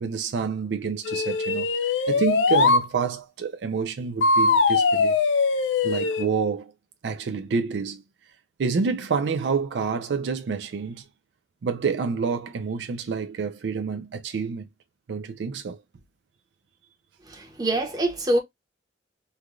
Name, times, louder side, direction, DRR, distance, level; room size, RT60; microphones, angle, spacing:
voice 1, 0.0-1.7 2.1-5.2 5.8-6.7 7.0-8.0 8.6-11.0 11.6-14.7 15.1-15.8, right 5 dB, 70° right, 0.4 m, -28 dB
sound 1, 1.0-2.9 4.2-6.3, left 4 dB, 90° left, 0.5 m, -21 dB
voice 2, 17.3-18.4, right 1 dB, 20° right, 0.9 m, -25 dB
3.3 x 2.3 x 2.4 m
head